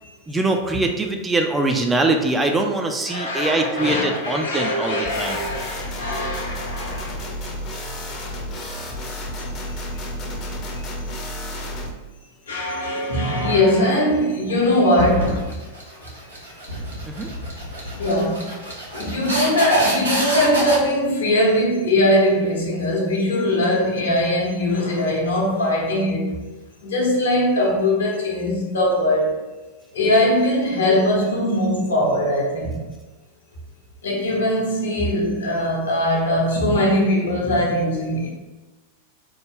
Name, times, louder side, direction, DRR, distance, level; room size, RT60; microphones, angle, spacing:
voice 1, 0.3-5.5 17.1-17.3, right 2 dB, 15° right, 0.3 m, -22 dB
voice 2, 3.1-7.2 9.7-9.8 10.7-10.9 12.5-15.5 17.8-18.5 18.9-26.4 26.8-29.4 29.9-32.8 34.0-38.3, left 1 dB, 70° left, 0.9 m, -21 dB
sound 1, 5.1-11.9, left 1 dB, 35° left, 0.6 m, -31 dB
sound 2, 15.0-20.8, right 1 dB, 80° right, 1.0 m, -27 dB
3.1 x 2.2 x 3.5 m
figure-of-eight pair, 90°, 0 cm